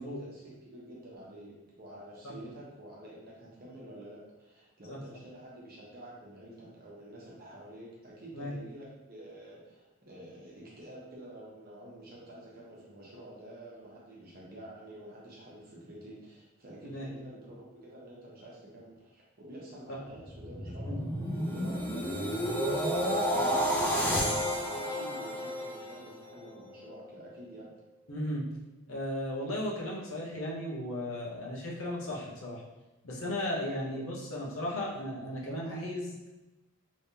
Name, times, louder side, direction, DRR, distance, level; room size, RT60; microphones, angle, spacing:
voice 1, 0.0-27.7 33.9-34.0, right 1 dB, 45° right, -5 dB, 1.0 m, -48 dB
sound 1, 20.2-26.4 26.9-27.1, equal, 10° left, 0.4 m, -31 dB
voice 2, 28.1-28.5 28.9-32.6 33.0-36.3, left 1 dB, 75° left, -4 dB, 0.9 m, -35 dB
3.3 x 3.1 x 2.7 m, 1.0 s
head